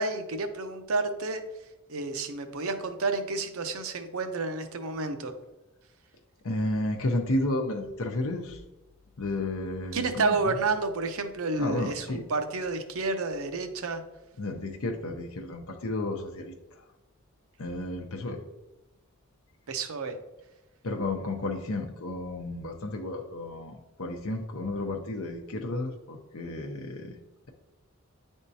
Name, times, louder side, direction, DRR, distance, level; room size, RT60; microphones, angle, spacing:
voice 1, 0.0-1.4 1.9-5.3 9.9-14.0 19.7-20.2, right 3 dB, 70° right, 7 dB, 0.7 m, -30 dB
voice 2, 6.4-8.6 9.2-10.5 11.6-12.2 14.4-16.5 17.6-18.4 20.8-27.2, left 2 dB, 70° left, 2 dB, 0.7 m, -32 dB
9.8 x 3.6 x 2.7 m, 1.0 s
head